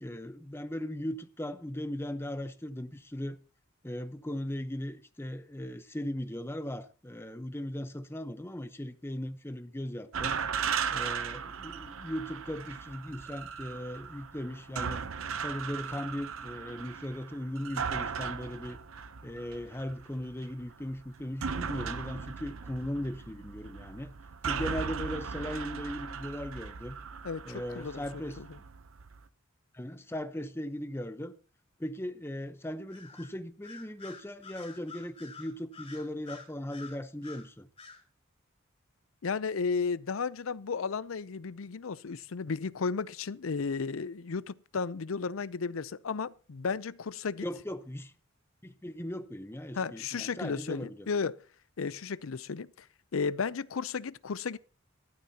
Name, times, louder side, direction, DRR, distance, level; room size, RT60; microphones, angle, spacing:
voice 1, 0.0-3.4 3.8-10.4 10.9-15.1 15.4-18.8 19.2-24.1 24.5-27.0 27.4-28.4 29.7-31.3 31.8-37.7 47.4-48.1 48.6-51.1, left 1 dB, 10° left, 0.8 m, -38 dB
sound 1, 10.1-29.2, right 6 dB, 80° right, 0.7 m, -37 dB
voice 2, 27.2-28.5 39.2-47.4 49.7-51.4 51.8-52.9 53.1-54.6, left 5 dB, 85° left, 0.6 m, -34 dB
Bird vocalization bird call bird song, 32.9-33.3 33.6-37.5 37.8-38.0, left 4 dB, 30° left, 4.0 m, -48 dB
15.5 x 12.5 x 2.8 m
head